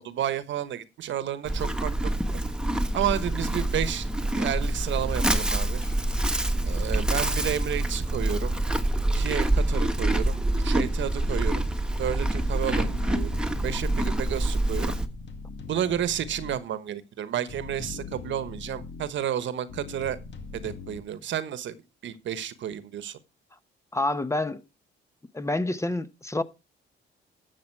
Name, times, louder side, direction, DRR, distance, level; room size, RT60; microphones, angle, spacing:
voice 1, 0.0-2.4 2.9-4.1 4.3-5.8 6.7-8.5 9.1-10.4 10.6-11.6 12.0-13.3 13.6-14.9 15.7-20.2 20.5-21.8 22.0-23.2, right 10 dB, 70° right, 1.3 m, -31 dB
Livestock farm animals working animals, 1.4-15.1, right 1 dB, 5° right, 1.4 m, -26 dB
sound 1, 2.6-7.5 10.2-10.3 10.5-10.6 12.4-14.1 14.6-16.6 17.5-19.1 19.7-21.0, left 5 dB, 65° left, 2.2 m, -43 dB
voice 2, 23.9-24.6 25.3-26.4, left 2 dB, 15° left, 0.9 m, -27 dB
13.0 x 7.4 x 4.6 m
cardioid pair, 90°, 20 cm